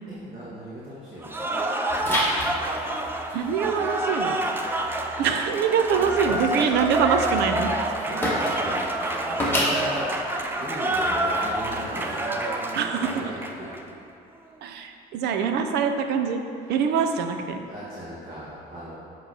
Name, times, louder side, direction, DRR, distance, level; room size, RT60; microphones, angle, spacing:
voice 1, 0.1-1.5 6.0-6.7 8.0-13.9 16.6-16.8 17.7-18.9, right 1 dB, 30° right, -10 dB, 1.6 m, -38 dB
Cheering / Applause, 1.2-13.8, right 1 dB, 10° right, 0.5 m, -28 dB
sound 1, 1.9-12.3, left 1 dB, 15° left, 1.3 m, -33 dB
voice 2, 3.3-4.4 5.2-7.9 12.7-13.3 14.6-16.4 16.7-17.6, right 6 dB, 80° right, 6 dB, 0.6 m, -24 dB
8.3 x 3.1 x 5.5 m, 2.6 s
cardioid pair, 110°, 17 cm